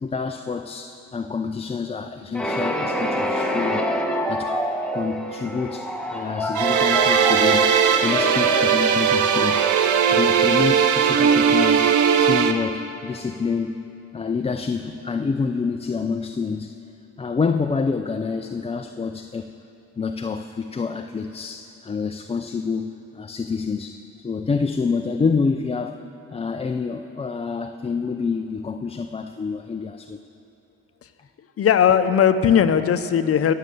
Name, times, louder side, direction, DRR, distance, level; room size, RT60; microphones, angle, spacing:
voice 1, 0.0-3.9 4.3-4.5 4.9-7.7 8.0-9.8 10.1-13.8 14.1-16.8 17.2-19.5 20.0-30.2, left 5 dB, 20° left, 6 dB, 0.5 m, -27 dB
sound 1, 2.3-11.1, equal, 5° left, 1.4 m, -27 dB
sound 2, 6.6-12.5, right 7 dB, 80° right, 0.9 m, -18 dB
voice 2, 31.6-33.5, left 8 dB, 50° left, 10 dB, 0.8 m, -18 dB
20.0 x 6.7 x 7.8 m, 2.9 s
cardioid pair, 90°, 30 cm